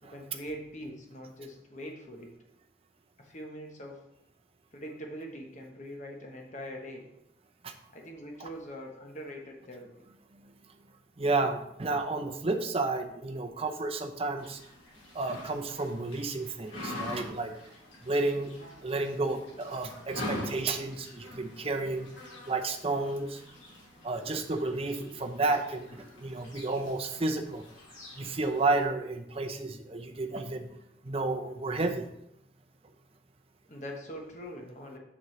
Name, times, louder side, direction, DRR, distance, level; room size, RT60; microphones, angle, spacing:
voice 1, 0.0-2.3 3.2-4.1 4.7-7.2 7.9-9.9 24.2-24.7 25.0-25.3 26.0-26.1 33.7-35.0, equal, 40° left, 1 dB, 1.0 m, -43 dB
voice 2, 11.2-14.6 15.1-17.6 18.0-18.5 18.8-22.1 22.5-23.4 24.0-27.6 28.2-30.7 31.0-32.0, right 3 dB, 30° right, 5 dB, 0.6 m, -31 dB
sound 1, 14.4-28.8, left 1 dB, 90° left, 2.4 m, -44 dB
7.3 x 6.1 x 3.1 m, 0.81 s
head